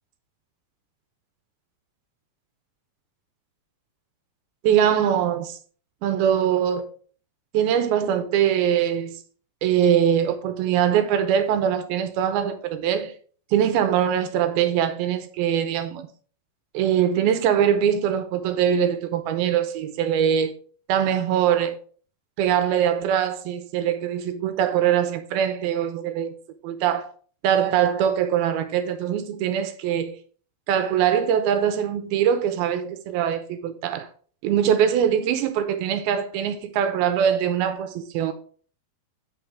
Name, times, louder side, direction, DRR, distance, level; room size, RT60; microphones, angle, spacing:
voice 1, 4.6-5.6 6.0-6.9 7.5-9.2 9.6-13.1 13.5-16.1 16.7-20.5 20.9-21.8 22.4-26.4 26.6-27.1 27.4-30.2 30.7-34.1 34.4-38.3, right 9 dB, 80° right, 2.6 m, -22 dB
8.6 x 5.6 x 3.4 m
omnidirectional pair, 4.4 m